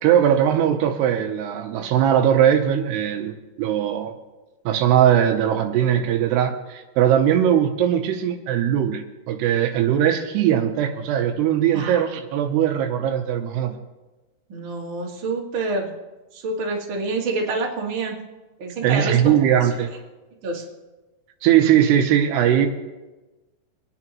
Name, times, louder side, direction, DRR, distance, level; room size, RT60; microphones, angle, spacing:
voice 1, 0.0-4.1 4.7-13.8 18.8-19.9 21.4-22.7, right 10 dB, 80° right, 5 dB, 2.8 m, -20 dB
voice 2, 11.7-12.1 14.5-15.9 16.3-18.2 18.6-19.2 20.4-20.7, right 3 dB, 45° right, -2 dB, 1.8 m, -27 dB
27.0 x 9.9 x 3.0 m, 1.1 s
omnidirectional pair, 4.9 m